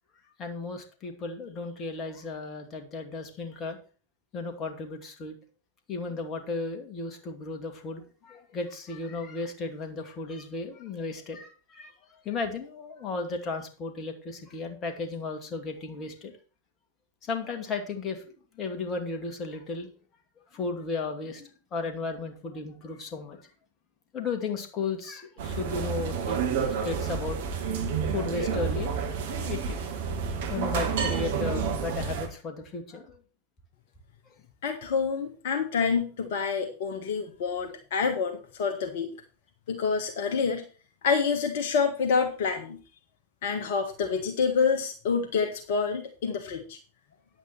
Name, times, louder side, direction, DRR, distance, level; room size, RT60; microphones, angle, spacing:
voice 1, 0.4-3.8 4.3-5.4 5.9-11.9 12.2-16.3 17.2-19.9 20.5-23.5 24.1-26.4 26.7-28.9 29.4-30.0 30.5-33.2, left 4 dB, 30° left, 5 dB, 1.9 m, -35 dB
sound 1, 25.4-32.3, right 6 dB, 55° right, 1.7 m, -29 dB
voice 2, 34.6-39.1 39.7-40.6 41.0-42.8 43.4-46.8, left 5 dB, 55° left, 4 dB, 1.3 m, -27 dB
9.8 x 8.1 x 4.4 m, 0.37 s
figure-of-eight pair, 90°, 0 cm